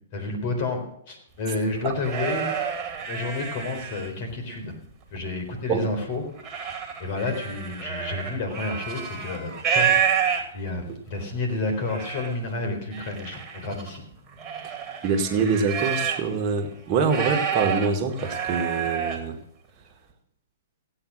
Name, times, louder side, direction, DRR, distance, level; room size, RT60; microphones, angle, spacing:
voice 1, 0.1-2.5 3.1-4.7 5.1-6.3 7.0-10.1 10.5-14.0, left 3 dB, 50° left, 4 dB, 4.2 m, -30 dB
sound 1, 1.5-4.4 4.8-5.6 6.0-10.8 11.4-11.5 11.7-12.3 12.9-16.4 16.7-19.3, right 7 dB, 20° right, 2.5 m, -29 dB
voice 2, 15.0-19.4, right 4 dB, 35° right, 4 dB, 1.8 m, -25 dB
16.0 x 8.8 x 6.4 m, 0.70 s
hypercardioid pair, 125°, 0 cm